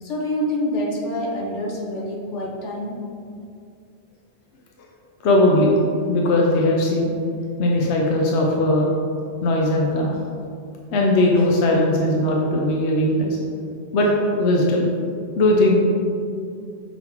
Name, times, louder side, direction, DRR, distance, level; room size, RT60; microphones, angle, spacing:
voice 1, 0.0-3.0, left 1 dB, 90° left, -2 dB, 1.3 m, -26 dB
voice 2, 5.2-5.7 6.1-7.1 7.6-8.9 9.4-10.2 10.9-13.4 13.9-14.9 15.4-15.8, left 1 dB, 75° left, -1 dB, 0.9 m, -19 dB
6.0 x 3.8 x 4.4 m, 2.4 s
omnidirectional pair, 1.2 m